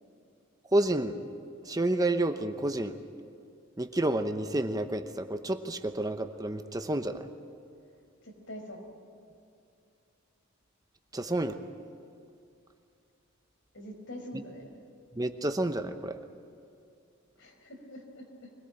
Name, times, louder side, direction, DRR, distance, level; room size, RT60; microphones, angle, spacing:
voice 1, 0.7-1.2 1.6-3.0 3.8-7.3 11.1-11.6 14.3-14.4 15.1-16.2, right 1 dB, 20° right, 8 dB, 0.8 m, -29 dB
voice 2, 8.2-8.8 13.7-14.6 17.4-18.5, left 1 dB, 70° left, 2 dB, 5.0 m, -44 dB
24.5 x 18.5 x 8.9 m, 2.4 s
head